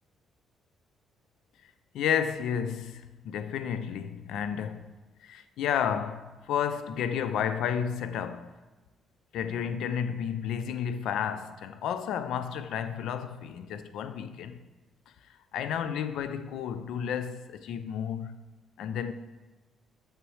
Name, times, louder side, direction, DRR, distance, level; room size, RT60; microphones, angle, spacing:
voice 1, 1.9-4.9 5.2-8.5 9.3-14.6 15.5-18.4 18.8-19.1, left 8 dB, 80° left, 0.4 m, -32 dB
6.8 x 6.1 x 3.1 m
cardioid pair, 90°, 0 cm